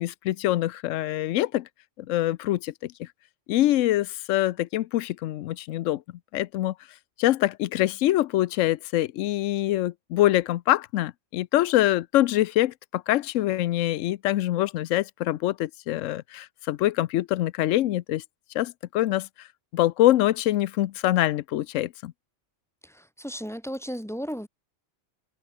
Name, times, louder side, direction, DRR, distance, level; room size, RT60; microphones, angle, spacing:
voice 1, 0.0-1.7 2.1-3.1 3.5-6.0 6.3-6.7 7.2-18.2 18.5-19.3 19.7-22.1, left 14 dB, 85° left, 0.9 m, -24 dB
voice 2, 22.8-24.5, equal, ahead, 4.5 m, -35 dB
omnidirectional pair, 1.3 m